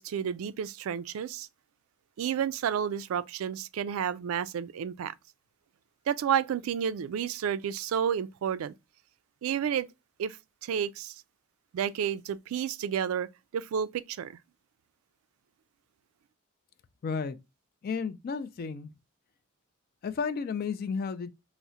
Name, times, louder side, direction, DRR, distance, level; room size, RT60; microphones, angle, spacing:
voice 1, 0.0-1.5 2.2-5.1 6.1-8.7 9.4-9.9 10.2-10.4 10.6-11.2 11.7-13.3 13.5-14.4, right 8 dB, 80° right, 0.3 m, -31 dB
voice 2, 17.0-17.4 17.8-18.9 20.0-21.3, left 5 dB, 45° left, 0.3 m, -32 dB
4.6 x 2.1 x 2.6 m
head